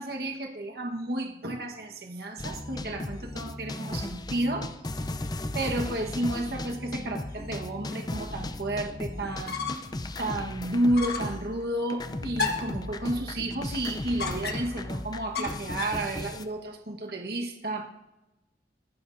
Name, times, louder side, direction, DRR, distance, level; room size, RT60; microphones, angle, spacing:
voice 1, 0.0-4.7 5.0-5.1 5.5-9.8 10.2-17.9, right 1 dB, 60° right, 2 dB, 1.3 m, -31 dB
sound 1, 2.4-11.6 11.9-16.4, left 1 dB, 25° left, 0.5 m, -36 dB
sound 2, 9.3-10.0 10.3-10.4 10.9-11.4 12.4-12.8 14.2-14.8 15.3-16.0, left 4 dB, 60° left, 1.4 m, -32 dB
24.0 x 12.0 x 2.7 m, 1.0 s
head